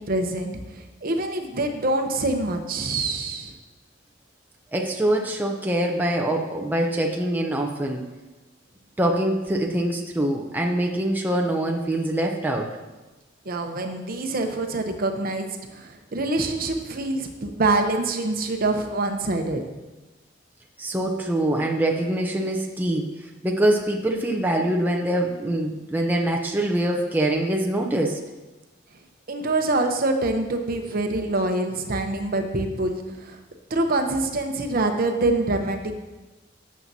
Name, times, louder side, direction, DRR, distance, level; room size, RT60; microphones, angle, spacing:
voice 1, 0.0-3.5 13.4-19.6 29.3-33.4 33.7-36.0, right 2 dB, 50° right, 5 dB, 0.8 m, -25 dB
voice 2, 4.7-8.1 9.0-12.7 20.8-28.2, right 1 dB, 10° right, 0 dB, 0.6 m, -24 dB
12.0 x 7.3 x 2.7 m, 1.2 s
head